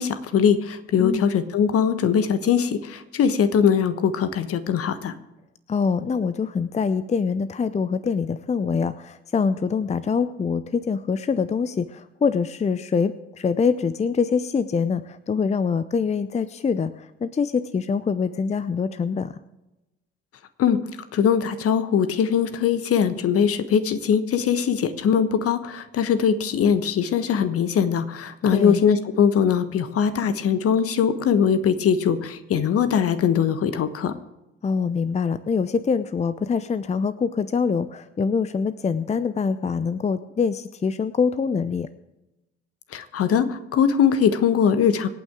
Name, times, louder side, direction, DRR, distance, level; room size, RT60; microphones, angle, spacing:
voice 1, 0.0-5.1 20.6-20.8 21.1-34.1 42.9-45.1, left 7 dB, 45° left, 11 dB, 1.3 m, -21 dB
voice 2, 5.7-19.4 28.5-28.8 34.6-41.9, left 5 dB, 20° left, 14 dB, 0.6 m, -24 dB
25.5 x 9.0 x 3.7 m, 0.97 s
figure-of-eight pair, 50°, 31 cm